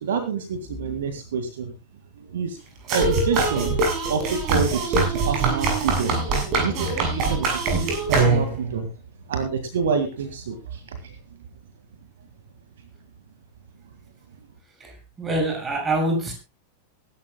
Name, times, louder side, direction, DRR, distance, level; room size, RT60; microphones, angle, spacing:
voice 1, 0.0-1.7 2.2-2.6 2.9-3.8 4.1-6.2 6.6-8.9 9.3-11.1, right 6 dB, 60° right, 7 dB, 2.1 m, -28 dB
sound 1, 2.9-8.7, right 3 dB, 40° right, 7.6 m, -23 dB
voice 2, 14.8-16.3, right 1 dB, 15° right, 3 dB, 6.8 m, -25 dB
23.5 x 12.0 x 2.3 m, 0.28 s
figure-of-eight pair, 90°, 0 cm